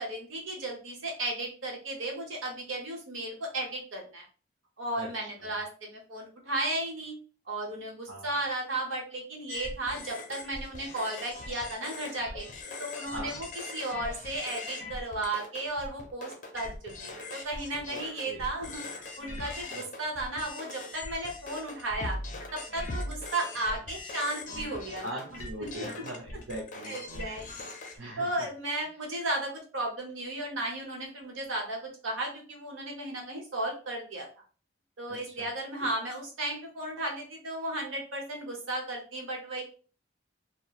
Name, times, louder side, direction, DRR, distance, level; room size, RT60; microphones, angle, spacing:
voice 1, 0.0-4.3 4.8-7.2 7.5-12.5 12.8-13.5 13.7-18.8 19.2-22.2 22.5-25.2 25.6-25.8 26.9-27.7 28.2-34.3 35.0-39.6, right 2 dB, 85° right, 0 dB, 0.9 m, -34 dB
voice 2, 5.0-5.6 8.1-8.3 13.0-13.4 17.9-18.4 19.6-19.8 25.0-27.0 28.0-28.5 35.1-35.5 35.8-35.9, right 1 dB, 60° right, -2 dB, 0.6 m, -41 dB
sound 1, 9.5-28.0, left 2 dB, 40° left, 0.5 m, -40 dB
2.9 x 2.0 x 2.3 m, 0.38 s
head